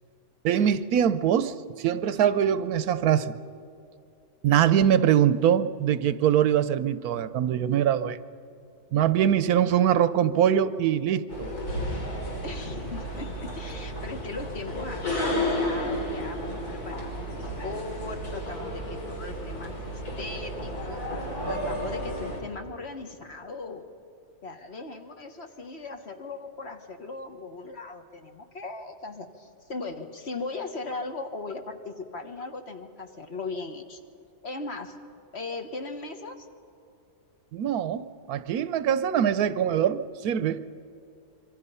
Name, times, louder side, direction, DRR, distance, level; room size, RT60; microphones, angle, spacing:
voice 1, 0.4-3.4 4.4-8.2 8.9-11.5 37.5-40.6, right 9 dB, 80° right, 14 dB, 1.2 m, -23 dB
sound 1, 11.3-22.4, equal, 80° left, 4.1 m, -32 dB
voice 2, 12.4-21.1 21.4-23.9 24.4-34.0 34.4-35.0 35.3-36.5, left 3 dB, 45° left, 5 dB, 1.5 m, -38 dB
26.0 x 23.5 x 5.6 m, 2.5 s
omnidirectional pair, 1.6 m